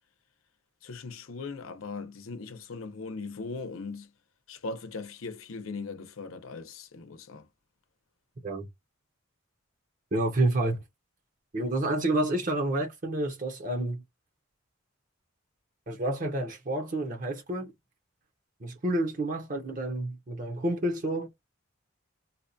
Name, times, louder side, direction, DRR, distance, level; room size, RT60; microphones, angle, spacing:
voice 1, 0.8-4.1 4.5-7.5, left 3 dB, 85° left, 0.7 m, -39 dB
voice 2, 10.1-10.8 11.5-14.0 15.9-17.7 18.6-21.3, right 1 dB, 40° right, 0.7 m, -29 dB
4.0 x 2.2 x 2.6 m
head